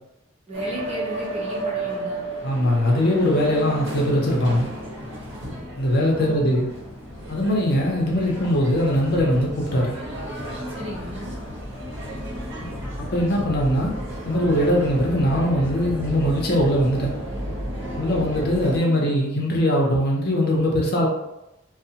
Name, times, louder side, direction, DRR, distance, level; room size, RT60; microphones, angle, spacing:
voice 1, 0.5-2.2 6.2-6.6 10.7-11.3 18.8-19.1, equal, 30° right, -5 dB, 0.8 m, -35 dB
sound 1, 0.5-18.8, right 1 dB, 60° right, 0.8 m, -33 dB
voice 2, 2.4-4.7 5.8-6.7 7.3-9.9 13.1-13.9 14.2-17.1 18.0-21.1, equal, 50° left, -2 dB, 0.6 m, -21 dB
2.6 x 2.0 x 2.7 m, 0.91 s
head